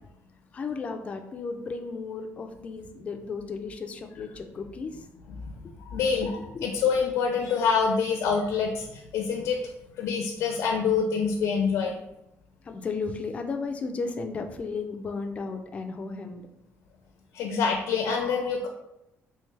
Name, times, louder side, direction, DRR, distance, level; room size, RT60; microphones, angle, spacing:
voice 1, 0.5-5.1 5.6-5.7 6.4-6.7 12.6-16.4, left 4 dB, 25° left, 5 dB, 0.3 m, -34 dB
voice 2, 5.4-9.6 10.0-12.0 17.3-18.7, left 5 dB, 90° left, 2 dB, 0.5 m, -26 dB
3.3 x 3.0 x 3.2 m, 0.85 s
cardioid pair, 175°, 5 cm